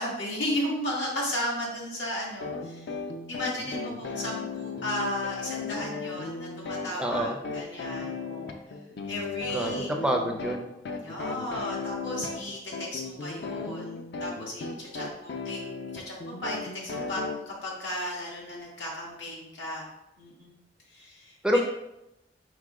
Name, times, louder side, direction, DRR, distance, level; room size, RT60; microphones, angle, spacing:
voice 1, 0.0-3.0 3.3-8.5 9.1-9.9 11.0-15.6 15.9-19.9 20.2-20.5 20.9-21.6, left 1 dB, 90° left, -4 dB, 1.5 m, -35 dB
sound 1, 2.4-17.4, left 4 dB, 65° left, 0.5 m, -36 dB
voice 2, 7.0-7.4 9.5-10.7 21.4-21.6, equal, 5° right, 2 dB, 0.4 m, -27 dB
4.7 x 2.1 x 4.7 m, 0.87 s
head